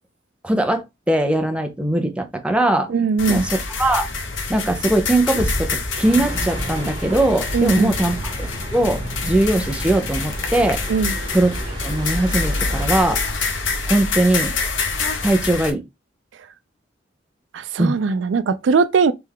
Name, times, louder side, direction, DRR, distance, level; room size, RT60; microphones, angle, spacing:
voice 1, 0.4-2.9 3.3-4.1 4.5-10.8 11.3-11.5 11.8-13.2 13.9-14.6 15.2-15.8 17.8-18.0, right 1 dB, 5° right, 0.5 m, -20 dB
voice 2, 2.9-3.5 7.5-8.0 10.9-11.2 17.5-19.1, right 5 dB, 75° right, 0.4 m, -20 dB
sound 1, 3.2-15.7, left 4 dB, 80° left, 0.9 m, -26 dB
sound 2, 6.0-13.1, right 1 dB, 25° right, 1.3 m, -32 dB
3.4 x 3.2 x 3.5 m
head